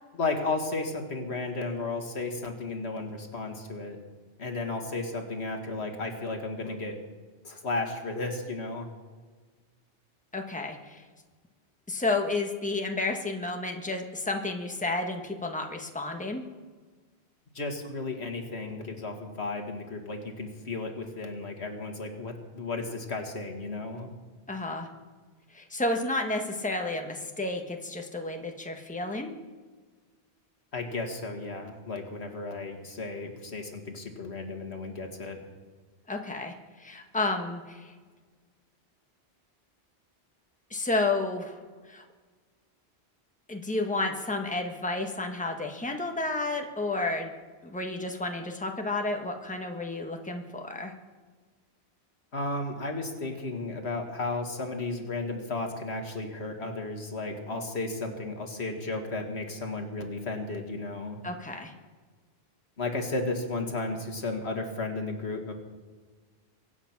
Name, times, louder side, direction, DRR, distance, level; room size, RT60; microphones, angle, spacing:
voice 1, 0.2-4.0 4.4-7.0 7.4-8.9 17.5-24.1 30.7-35.4 52.3-61.2 62.8-65.5, left 3 dB, 85° left, 3 dB, 2.2 m, -34 dB
voice 2, 10.3-11.0 11.9-16.4 24.5-24.9 25.5-29.3 36.1-37.9 40.7-41.6 41.9-42.0 43.5-47.3 47.6-50.9 61.2-61.7, left 2 dB, 5° left, 3 dB, 1.3 m, -31 dB
24.0 x 8.0 x 6.0 m, 1.4 s
omnidirectional pair, 1.1 m